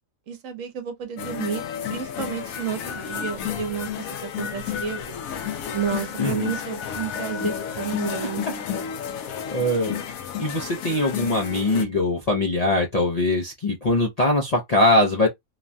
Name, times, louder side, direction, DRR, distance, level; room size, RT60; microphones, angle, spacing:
voice 1, 0.3-1.6 1.9-5.2 5.7-8.6, right 8 dB, 75° right, 1.1 m, -31 dB
sound 1, 1.2-11.9, left 8 dB, 80° left, 1.0 m, -31 dB
voice 2, 6.2-6.5 9.5-10.0 10.4-15.3, left 2 dB, 45° left, 0.5 m, -22 dB
3.0 x 2.2 x 2.5 m
omnidirectional pair, 1.4 m